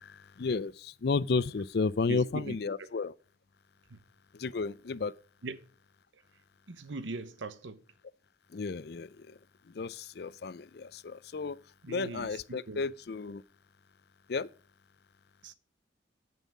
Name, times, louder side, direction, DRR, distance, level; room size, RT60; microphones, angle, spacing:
voice 1, 0.0-3.1 4.3-5.1 8.5-9.4 9.7-11.6 11.9-13.4 14.3-14.5, left 4 dB, 60° left, 0.4 m, -33 dB
voice 2, 2.1-2.6 3.9-4.0 5.4-5.6 6.7-7.8 11.8-12.8 15.4-15.5, right 3 dB, 85° right, 0.9 m, -40 dB
9.3 x 5.5 x 7.2 m
head